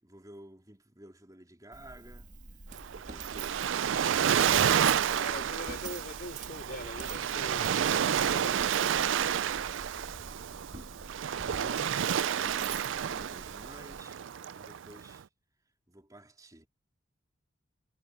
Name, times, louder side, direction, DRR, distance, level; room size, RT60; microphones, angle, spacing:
voice 1, 0.0-5.8 12.1-14.3 14.5-15.3 15.9-16.7, right 1 dB, 20° right, 3.7 m, -53 dB
Coin (dropping), 1.7-14.0, right 4 dB, 40° right, 2.4 m, -45 dB
Waves surf, 2.8-15.2, right 9 dB, 70° right, 0.4 m, -30 dB
voice 2, 5.1-8.7 11.4-12.2, left 2 dB, 50° left, 4.6 m, -44 dB
head